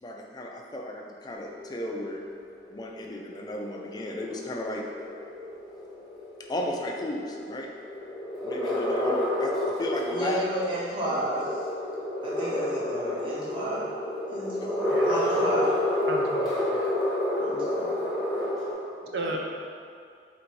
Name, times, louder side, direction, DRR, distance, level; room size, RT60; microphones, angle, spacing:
voice 1, 0.0-2.2 2.7-4.8 6.5-7.7 8.4-10.4 11.1-11.2 14.6-14.7 18.2-18.5 19.0-19.4, left 1 dB, 25° left, 0 dB, 0.3 m, -34 dB
sound 1, 1.3-18.7, left 1 dB, ahead, 0.9 m, -30 dB
voice 2, 10.1-11.5 12.2-13.9 14.3-15.7 17.4-17.9, equal, 30° right, -8 dB, 0.9 m, -32 dB
voice 3, 14.9-15.5 16.1-16.9 19.1-19.4, right 2 dB, 70° right, 0 dB, 0.5 m, -34 dB
3.4 x 2.7 x 4.5 m, 2.3 s
head